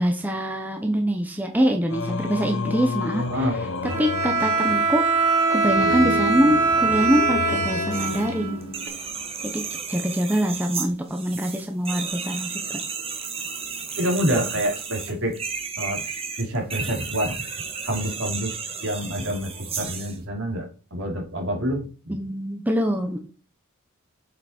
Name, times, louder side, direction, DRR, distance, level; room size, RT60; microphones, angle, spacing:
voice 1, 0.0-3.5 4.0-5.1 5.5-8.7 9.4-9.6 9.9-12.8 22.1-23.2, equal, 10° right, 4 dB, 0.9 m, -24 dB
Singing, 1.9-9.3, left 4 dB, 60° left, 0.9 m, -32 dB
voice 2, 3.2-3.6 14.0-15.3 15.8-17.4 17.8-22.1, equal, 65° right, 1 dB, 2.9 m, -27 dB
Bowed string instrument, 3.8-8.9, right 3 dB, 85° right, 3.1 m, -22 dB
sound 1, 7.9-8.3 8.6-20.2, right 5 dB, 25° right, 1.5 m, -33 dB
8.0 x 5.8 x 4.4 m, 0.38 s
head